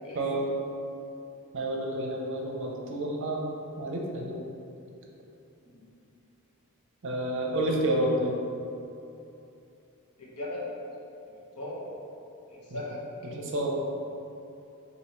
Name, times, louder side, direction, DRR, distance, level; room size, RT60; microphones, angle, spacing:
voice 1, 0.0-0.6 5.6-5.9 10.2-10.7 11.3-11.9 12.5-13.0, left 2 dB, 90° left, -5 dB, 1.1 m, -39 dB
voice 2, 1.5-3.4 3.8-4.4 7.0-8.3 12.7-12.8 13.3-13.8, right 1 dB, 60° right, 0 dB, 0.7 m, -29 dB
6.5 x 2.7 x 3.0 m, 2.7 s
head